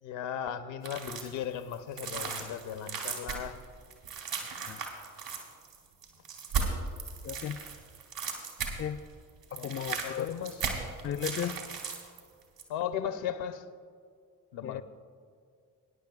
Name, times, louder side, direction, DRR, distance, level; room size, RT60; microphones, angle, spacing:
voice 1, 0.0-3.6 9.5-9.6 10.0-10.6 12.7-13.7 14.5-14.8, left 9 dB, 70° left, 0.8 m, -36 dB
sound 1, 0.8-1.4 1.7-9.0 9.3-12.2 12.6-12.7, right 5 dB, 85° right, 2.3 m, -36 dB
voice 2, 7.2-7.7 8.8-9.1 9.5-10.3 11.0-11.6 14.6-14.8, left 9 dB, 30° left, 0.4 m, -35 dB
21.0 x 10.5 x 2.4 m
hypercardioid pair, 40°, 48 cm